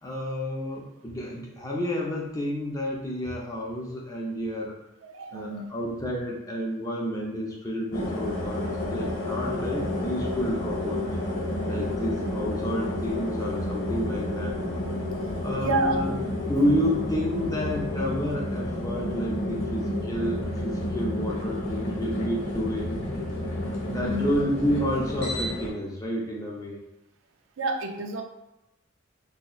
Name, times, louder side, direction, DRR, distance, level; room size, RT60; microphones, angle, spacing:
voice 1, 0.0-4.8 5.3-8.6 8.9-11.0 11.7-14.6 15.4-16.1 16.5-23.0 23.9-26.8, equal, 15° left, -3 dB, 0.5 m, -30 dB
voice 2, 5.1-5.7 15.3-16.0 23.9-24.3 27.6-28.2, right 3 dB, 70° right, 5 dB, 0.4 m, -30 dB
sound 1, 7.9-25.7, left 1 dB, 80° left, 1.1 m, -30 dB
4.1 x 2.8 x 2.4 m, 0.94 s
head